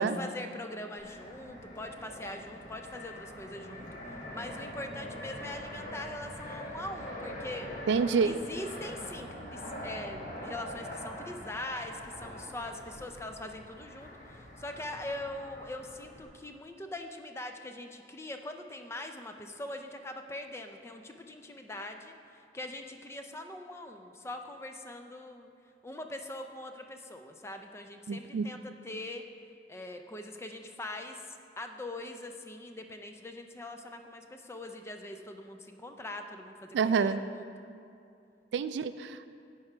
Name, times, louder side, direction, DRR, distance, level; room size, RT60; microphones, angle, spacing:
voice 1, 0.0-3.9 4.3-7.7 8.2-25.5 25.8-29.3 29.7-31.2 31.6-37.5, left 1 dB, 15° left, 5 dB, 0.4 m, -42 dB
Fixed-wing aircraft airplane, 1.0-16.3, equal, 45° left, 1.2 m, -44 dB
voice 2, 7.9-8.3 28.1-28.5 36.7-37.2 38.5-39.3, right 5 dB, 85° right, 12 dB, 0.3 m, -27 dB
10.5 x 4.8 x 4.4 m, 2.4 s
head